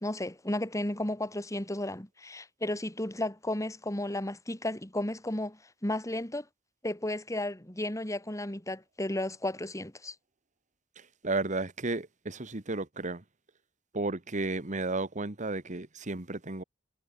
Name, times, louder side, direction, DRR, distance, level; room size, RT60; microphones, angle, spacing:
voice 1, 0.0-6.4 6.8-10.1, left 1 dB, 15° left, 2.4 m, -33 dB
voice 2, 11.2-13.2 13.9-16.6, right 2 dB, 40° right, 1.7 m, -33 dB
head